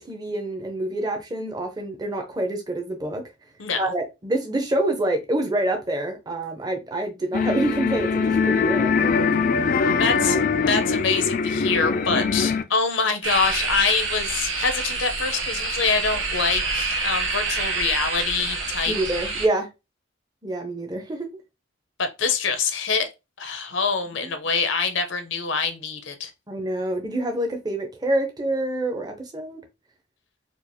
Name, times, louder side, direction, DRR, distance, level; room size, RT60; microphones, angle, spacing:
voice 1, 0.0-3.2 3.7-9.3 18.9-19.7 20.4-21.3 24.2-24.3 26.5-29.6, right 1 dB, 20° right, 0.7 m, -27 dB
voice 2, 3.6-3.9 10.0-18.9 22.0-23.1 23.4-26.3, left 5 dB, 75° left, 0.7 m, -25 dB
sound 1, 7.3-12.6, left 5 dB, 45° left, 0.4 m, -22 dB
sound 2, 13.2-19.5, right 4 dB, 75° right, 0.9 m, -27 dB
4.5 x 2.4 x 2.8 m
head